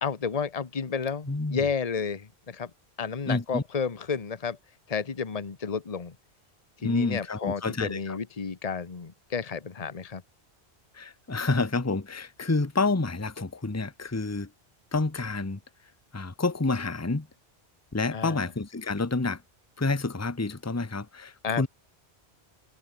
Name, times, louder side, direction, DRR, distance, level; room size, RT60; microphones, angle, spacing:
voice 1, 0.0-2.7 3.0-4.6 4.9-6.1 6.8-10.2 18.1-18.5 21.4-21.7, left 6 dB, 35° left, 1.2 m, -31 dB
voice 2, 1.3-1.6 3.3-3.6 6.8-8.2 10.9-14.5 14.9-15.6 16.1-17.3 17.9-19.4 19.8-21.7, left 3 dB, 15° left, 1.1 m, -28 dB
open air
omnidirectional pair, 1.1 m